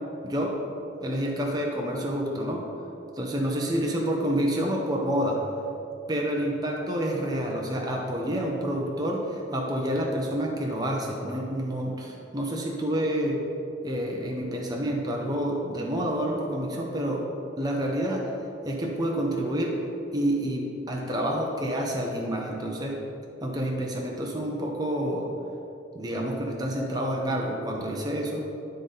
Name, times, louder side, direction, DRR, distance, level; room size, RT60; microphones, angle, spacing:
voice 1, 0.2-0.6 1.0-2.7 3.1-5.5 6.1-13.4 13.8-17.3 17.6-18.3 18.6-19.8 20.1-23.0 23.4-25.3 25.9-28.5, equal, 20° right, -1 dB, 0.7 m, -28 dB
10.5 x 3.8 x 3.9 m, 2.8 s
head